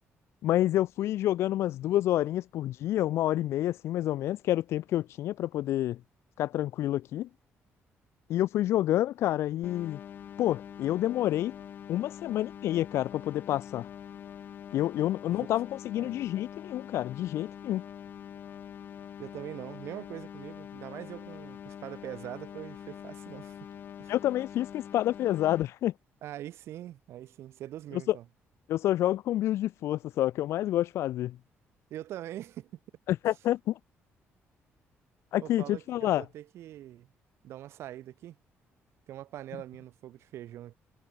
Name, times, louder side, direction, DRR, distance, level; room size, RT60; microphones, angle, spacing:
voice 1, 0.4-6.0 6.4-7.3 8.3-10.0 10.4-11.5 11.9-13.9 14.7-17.8 24.1-25.9 28.1-28.2 28.7-31.4 33.1-33.7 35.3-36.2, left 13 dB, 75° left, 2.1 m, -28 dB
sound 1, 9.6-25.6, left 9 dB, 45° left, 7.0 m, -45 dB
voice 2, 19.2-23.6 24.0-24.1 26.2-28.2 31.9-32.7 35.4-37.1 37.4-38.4 39.1-40.7, right 13 dB, 70° right, 6.8 m, -43 dB
cardioid pair, 175°, 5 cm